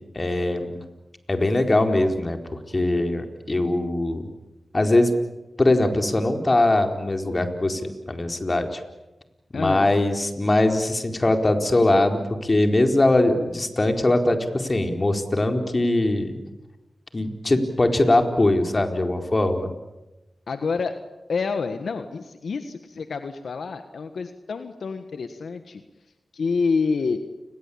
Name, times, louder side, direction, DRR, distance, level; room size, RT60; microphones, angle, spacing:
voice 1, 0.1-0.8 1.3-2.4 2.7-4.3 4.7-5.1 5.6-8.8 9.5-16.3 17.1-19.7, left 2 dB, 40° left, 5 dB, 4.4 m, -21 dB
voice 2, 9.5-10.0 20.5-21.0 21.3-25.8 26.3-27.2, left 4 dB, 80° left, 8 dB, 1.5 m, -28 dB
30.0 x 21.5 x 8.7 m, 1.0 s
cardioid pair, 40°, 0 cm